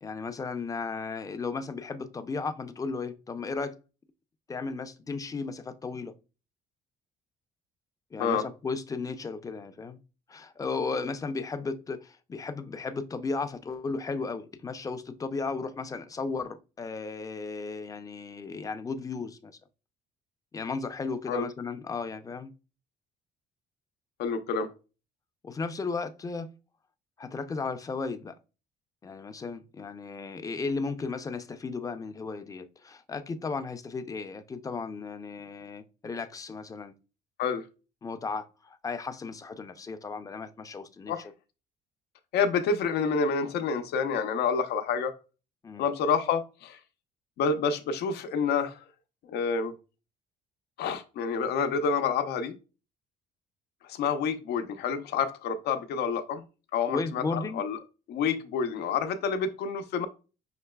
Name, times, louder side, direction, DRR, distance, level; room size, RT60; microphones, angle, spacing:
voice 1, 0.0-3.7 4.5-6.1 8.1-10.0 10.3-19.6 20.5-22.5 25.4-26.5 27.2-28.3 29.0-36.9 38.0-41.1 45.6-45.9 56.9-57.6, left 4 dB, 20° left, 0.5 m, -35 dB
voice 2, 24.2-24.7 37.4-37.6 41.1-41.3 42.3-45.1 45.8-46.8 47.4-48.8 49.3-49.7 50.8-52.5 53.8-56.4 56.7-57.8 58.1-60.1, left 6 dB, 75° left, 0.7 m, -28 dB
5.8 x 3.0 x 2.2 m
cardioid pair, 110°, 17 cm